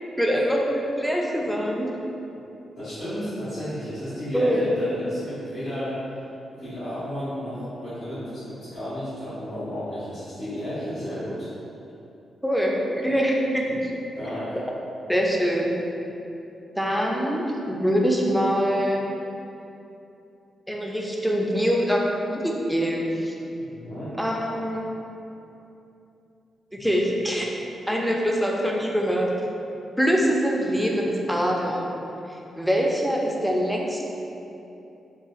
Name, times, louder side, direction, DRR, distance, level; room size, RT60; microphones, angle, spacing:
voice 1, 0.2-1.9 4.3-4.6 12.4-13.8 15.1-15.7 16.8-19.0 20.7-23.3 24.2-24.9 26.7-27.5 27.9-29.3 30.0-31.8 32.6-34.0, equal, ahead, -1 dB, 0.4 m, -24 dB
voice 2, 2.8-6.0 6.6-11.5 14.2-14.6 23.6-24.1, equal, 75° left, -16 dB, 1.3 m, -32 dB
3.7 x 2.3 x 2.4 m, 2.9 s
cardioid pair, 70°, 0 cm